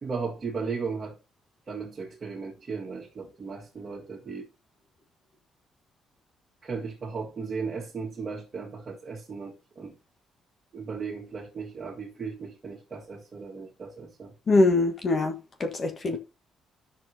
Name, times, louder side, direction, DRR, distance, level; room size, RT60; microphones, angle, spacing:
voice 1, 0.0-1.2 1.7-4.5 6.6-9.9 10.7-14.3 16.1-16.2, right 5 dB, 40° right, 1.8 m, -36 dB
voice 2, 14.5-15.3 15.6-16.2, left 2 dB, 40° left, 1.4 m, -22 dB
15.0 x 6.1 x 2.8 m
cardioid pair, 90°, 0 cm